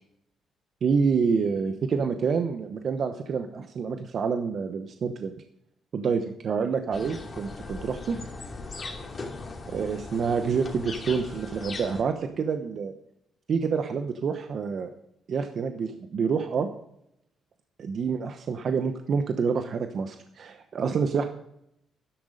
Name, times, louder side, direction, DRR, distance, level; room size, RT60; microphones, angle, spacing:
voice 1, 0.8-5.3 5.9-8.2 9.7-12.9 13.5-14.9 15.3-16.7 17.8-21.2, right 5 dB, 55° right, 7 dB, 0.9 m, -27 dB
sound 1, 6.9-12.0, left 3 dB, 35° left, 2.7 m, -39 dB
12.5 x 10.5 x 5.1 m, 0.77 s
cardioid pair, 90°, 0 cm